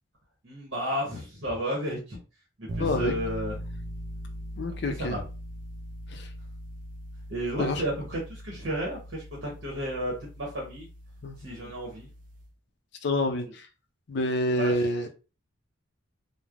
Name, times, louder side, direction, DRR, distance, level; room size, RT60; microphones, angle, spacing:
voice 1, 0.4-2.2 2.6-3.6 4.9-5.2 7.3-10.9 11.4-12.1 14.6-14.7, equal, 65° right, -4 dB, 0.9 m, -32 dB
sound 1, 2.7-12.5, equal, 40° right, 0.3 m, -40 dB
voice 2, 2.8-3.1 4.6-5.2 6.1-6.3 7.6-7.8 11.2-11.7 13.0-13.7 14.1-15.1, left 1 dB, 55° left, 6 dB, 0.4 m, -28 dB
3.1 x 2.0 x 2.4 m, 0.33 s
head